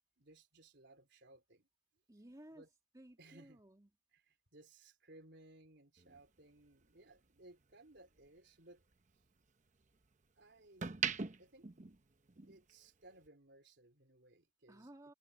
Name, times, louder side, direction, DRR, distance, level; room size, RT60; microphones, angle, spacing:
voice 1, 0.2-1.7 2.5-2.7 3.2-3.6 4.1-8.8 10.4-11.0 11.4-11.7 12.5-14.9, right 2 dB, 60° right, 4.1 m, -61 dB
voice 2, 2.1-2.7 2.9-3.9 14.7-15.1, right 1 dB, 20° right, 2.2 m, -57 dB
sound 1, 6.0-8.3 8.7-10.1 10.6-12.7 13.0-13.3, right 6 dB, 40° right, 0.9 m, -42 dB
head